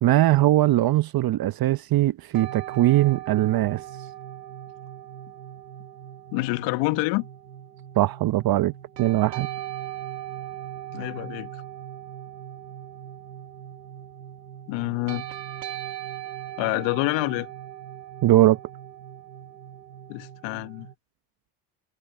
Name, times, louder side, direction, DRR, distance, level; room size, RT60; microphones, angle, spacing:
voice 1, 0.0-3.8 7.9-8.7 9.0-9.5 18.2-18.6, right 15 dB, 50° right, 1.2 m, -20 dB
sound 1, 2.3-20.9, right 12 dB, 90° right, 2.4 m, -39 dB
voice 2, 6.3-7.3 10.9-11.5 14.7-15.2 16.6-17.5 20.1-20.9, left 25 dB, 65° left, 1.6 m, -27 dB
hypercardioid pair, 65°, 48 cm